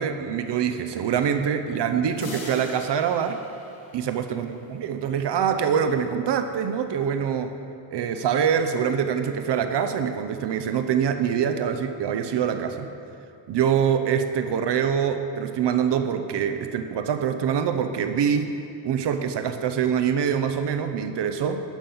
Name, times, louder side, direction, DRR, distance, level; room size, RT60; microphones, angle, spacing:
voice 1, 0.0-3.4 3.9-7.5 7.9-12.9 13.5-18.5 18.8-21.6, right 7 dB, 60° right, 8 dB, 0.8 m, -24 dB
sound 1, 2.2-4.9, left 3 dB, 45° left, 2.2 m, -41 dB
11.5 x 7.5 x 5.5 m, 2.6 s
cardioid pair, 125°, 48 cm